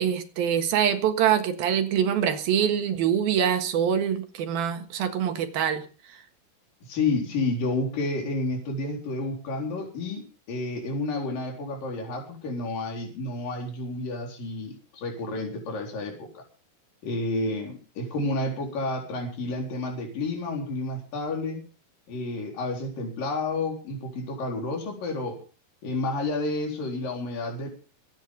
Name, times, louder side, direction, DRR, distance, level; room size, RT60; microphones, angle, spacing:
voice 1, 0.0-5.8, right 8 dB, 75° right, 7 dB, 3.4 m, -24 dB
voice 2, 6.8-16.4 17.0-21.6 22.1-25.4 25.8-27.7, left 2 dB, 65° left, 2 dB, 5.7 m, -30 dB
23.5 x 9.5 x 5.3 m, 0.37 s
omnidirectional pair, 4.3 m